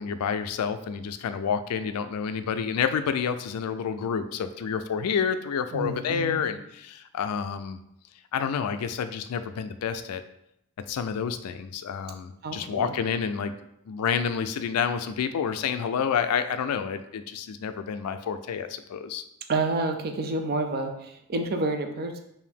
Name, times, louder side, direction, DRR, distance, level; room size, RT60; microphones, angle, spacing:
voice 1, 0.0-7.8 8.3-10.2 10.9-13.5 13.9-19.2, left 7 dB, 80° left, 10 dB, 0.3 m, -29 dB
voice 2, 5.7-6.4 12.4-12.9 19.5-22.2, right 3 dB, 45° right, 5 dB, 0.5 m, -29 dB
4.7 x 2.6 x 3.4 m, 0.79 s
head